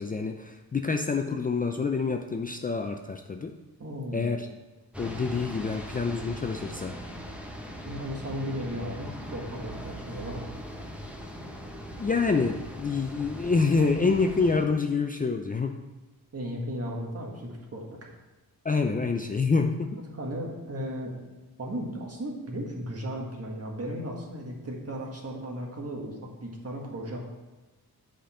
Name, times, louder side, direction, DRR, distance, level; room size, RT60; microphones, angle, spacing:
voice 1, 0.0-3.5 4.1-4.5 5.0-7.0 12.0-15.8 18.6-20.0, left 4 dB, 25° left, 4 dB, 0.4 m, -27 dB
voice 2, 3.8-4.4 7.8-10.5 16.3-18.0 19.9-21.1 21.6-27.2, equal, 40° right, -1 dB, 1.7 m, -35 dB
sound 1, 4.9-14.7, equal, 5° right, 0.9 m, -40 dB
7.9 x 5.2 x 4.4 m, 1.2 s
cardioid pair, 95°, 37 cm